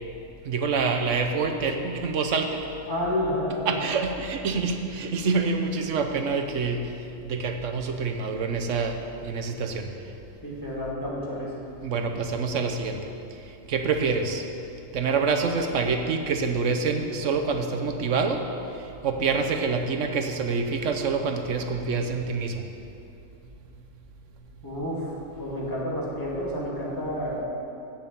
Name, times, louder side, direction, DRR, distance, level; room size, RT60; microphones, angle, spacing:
voice 1, 0.4-2.6 3.7-6.9 7.3-9.9 11.8-13.1 13.7-14.4 14.9-18.4 18.8-22.6, right 4 dB, 65° right, 4 dB, 1.1 m, -26 dB
voice 2, 2.9-3.7 10.4-11.5 11.9-12.0 24.6-25.1 25.4-27.4, left 1 dB, 15° left, -6 dB, 2.3 m, -30 dB
7.9 x 7.1 x 8.3 m, 2.8 s
omnidirectional pair, 1.5 m